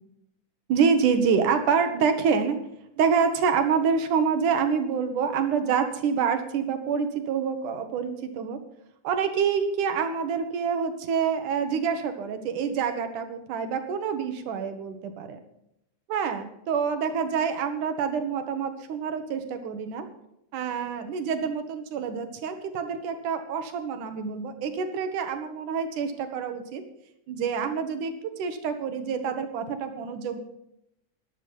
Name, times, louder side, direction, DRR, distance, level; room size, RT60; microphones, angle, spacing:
voice 1, 0.7-2.6 3.0-8.6 9.0-15.4 16.1-20.1 20.5-26.8 27.3-28.1 28.4-30.4, right 6 dB, 80° right, 7 dB, 2.9 m, -27 dB
13.0 x 11.0 x 5.7 m, 0.81 s
omnidirectional pair, 3.6 m